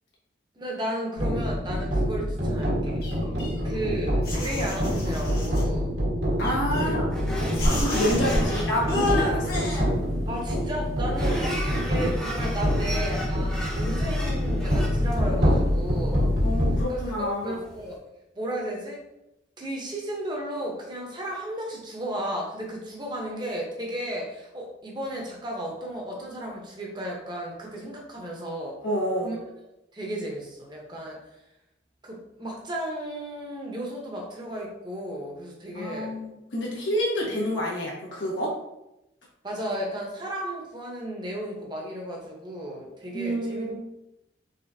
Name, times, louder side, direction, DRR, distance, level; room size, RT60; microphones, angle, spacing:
voice 1, 0.6-3.0 3.6-5.9 6.8-7.0 8.4-8.5 10.3-16.3 16.9-18.0 18.3-19.0 19.6-28.8 29.2-29.4 29.9-31.2 32.0-36.1 37.2-37.4 39.4-43.7, right 1 dB, 25° right, -1 dB, 0.8 m, -34 dB
sound 1, 1.2-16.8, equal, 80° right, 1.5 m, -26 dB
sound 2, 3.0-3.9 4.2-5.7 6.4-7.1 7.5-8.5 8.9-9.8, left 1 dB, 50° left, 1.4 m, -29 dB
voice 2, 6.4-7.1 7.8-9.6 16.4-17.6 28.8-29.3 35.7-38.5 43.1-43.8, equal, 85° left, -4 dB, 1.4 m, -28 dB
sound 3, 7.1-17.9, equal, 5° left, 0.6 m, -38 dB
4.1 x 3.7 x 2.6 m, 0.89 s
head